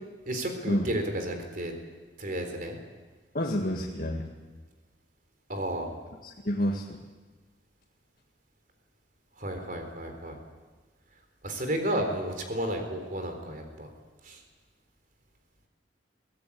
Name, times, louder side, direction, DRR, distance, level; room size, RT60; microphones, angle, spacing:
voice 1, 0.3-1.7 2.2-2.8 5.5-5.9 9.4-10.4 11.4-13.9 14.2-14.4, right 1 dB, 50° right, 5 dB, 3.9 m, -32 dB
voice 2, 3.3-4.3 6.4-7.0, equal, 50° left, 0 dB, 1.9 m, -28 dB
23.5 x 17.0 x 8.7 m, 1.3 s
head